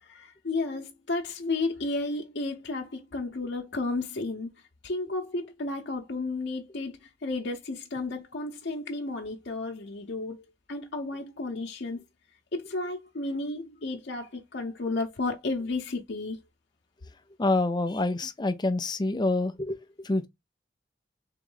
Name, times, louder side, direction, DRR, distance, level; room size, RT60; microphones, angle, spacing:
voice 1, 0.0-4.5 4.8-12.0 12.5-16.4, left 3 dB, 90° left, 0.7 m, -33 dB
voice 2, 17.4-20.3, left 2 dB, 25° left, 0.5 m, -27 dB
3.7 x 3.0 x 3.8 m
head